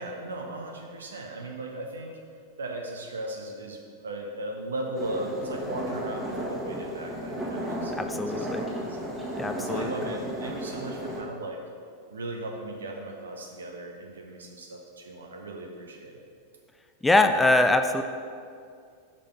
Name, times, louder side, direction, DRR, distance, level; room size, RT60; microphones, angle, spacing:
voice 1, 0.0-2.1 2.6-11.6 12.1-16.2, right 1 dB, 70° right, 2 dB, 0.6 m, -37 dB
sound 1, 4.9-11.2, equal, 10° right, 1.5 m, -34 dB
voice 2, 8.0-8.6 9.4-9.9 17.0-18.0, left 2 dB, 10° left, 7 dB, 0.3 m, -23 dB
5.3 x 5.1 x 5.4 m, 2.3 s
figure-of-eight pair, 90°, 0 cm